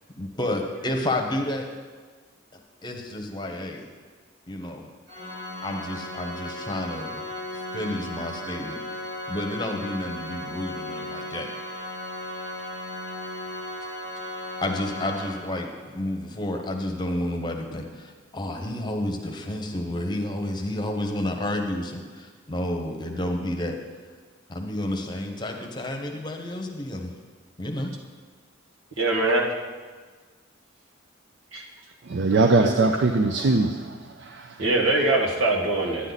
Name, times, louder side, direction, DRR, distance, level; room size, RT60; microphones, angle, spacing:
voice 1, 0.2-1.7 2.5-3.9 4.5-4.9 5.6-7.2 7.7-8.8 9.3-11.5 14.6-15.7 15.9-23.8 24.5-27.1 27.6-27.9, left 1 dB, 20° left, 3 dB, 0.9 m, -30 dB
Organ, 5.1-15.9, left 1 dB, 40° right, 2.7 m, -36 dB
voice 2, 29.0-29.5 31.5-31.6 32.6-32.7 34.6-36.1, right 2 dB, 75° right, -2 dB, 1.7 m, -22 dB
voice 3, 32.1-34.6, right 3 dB, 60° right, 6 dB, 0.5 m, -22 dB
11.0 x 9.9 x 4.0 m, 1.5 s
head